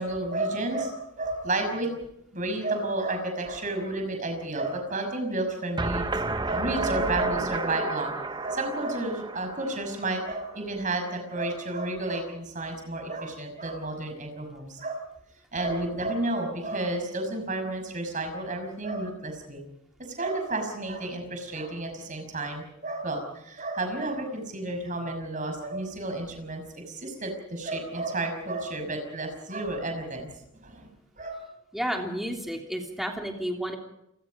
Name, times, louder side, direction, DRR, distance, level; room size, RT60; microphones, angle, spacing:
voice 1, 0.0-1.9 2.3-6.1 6.4-8.1 8.4-15.0 15.5-19.6 20.0-30.3 30.5-30.9 31.2-31.4, right 2 dB, 35° right, 5 dB, 6.1 m, -31 dB
sound 1, 5.8-10.7, right 2 dB, 20° right, 0.9 m, -32 dB
voice 2, 31.7-33.8, equal, ahead, 1 dB, 3.1 m, -31 dB
29.0 x 19.5 x 5.3 m, 0.80 s
head